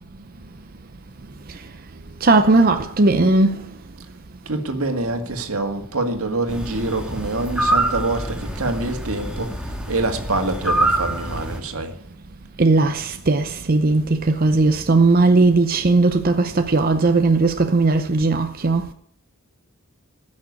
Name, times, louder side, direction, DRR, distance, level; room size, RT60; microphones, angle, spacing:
voice 1, 2.2-3.7 12.6-18.9, right 3 dB, 45° right, 0.6 m, -17 dB
voice 2, 4.5-11.9, right 2 dB, 85° right, 1.9 m, -25 dB
sound 1, 6.5-11.6, right 1 dB, 5° right, 1.6 m, -25 dB
14.5 x 6.4 x 9.6 m
head